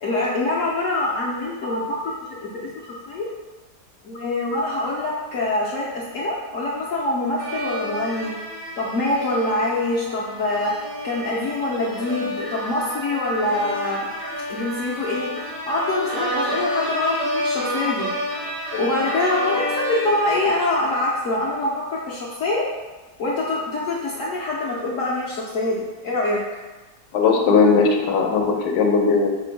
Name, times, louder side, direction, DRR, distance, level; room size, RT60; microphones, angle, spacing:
voice 1, 0.0-2.1 2.4-3.3 4.0-8.3 8.8-10.7 11.0-14.1 14.5-18.1 18.8-22.7 23.2-26.4, left 2 dB, 65° left, -5 dB, 0.9 m, -24 dB
sound 1, 7.4-21.1, equal, 80° right, 1.6 m, -30 dB
voice 2, 27.1-29.3, left 4 dB, 80° left, 2 dB, 1.3 m, -18 dB
4.5 x 2.5 x 4.4 m, 1.2 s
omnidirectional pair, 1.8 m